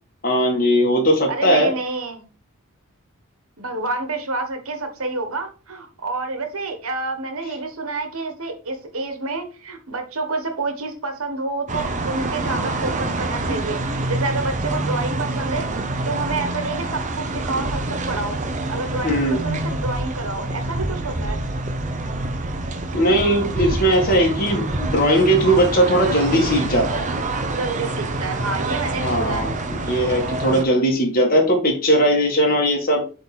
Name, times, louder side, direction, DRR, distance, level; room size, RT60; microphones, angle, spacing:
voice 1, 0.2-1.7 19.0-19.4 22.9-27.1 29.0-33.0, equal, 40° left, 0 dB, 1.8 m, -19 dB
voice 2, 1.3-2.3 3.6-15.7 16.0-18.4 18.7-21.4 27.5-29.5, right 3 dB, 70° right, 6 dB, 1.5 m, -28 dB
sound 1, 11.7-30.6, right 2 dB, 35° right, 0.7 m, -26 dB
7.7 x 3.9 x 4.3 m, 0.35 s
head